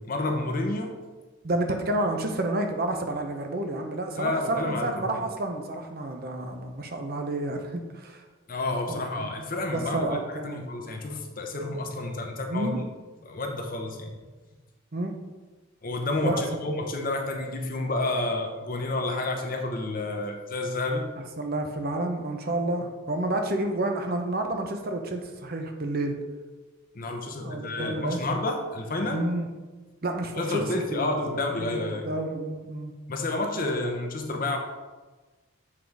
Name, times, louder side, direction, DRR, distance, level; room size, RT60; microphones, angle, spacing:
voice 1, 0.1-1.0 4.2-5.2 8.5-10.2 10.4-12.7 13.3-14.2 15.8-21.0 26.9-29.2 30.4-32.1 33.1-34.6, left 2 dB, 40° left, 3 dB, 0.8 m, -30 dB
voice 2, 1.4-8.2 8.9-9.3 9.7-10.7 12.5-12.9 14.9-15.2 16.2-16.6 21.4-26.2 27.2-28.4 29.1-29.5 30.0-30.7 30.9-32.9, right 1 dB, 45° right, 4 dB, 0.7 m, -30 dB
7.3 x 4.0 x 4.7 m, 1.3 s
head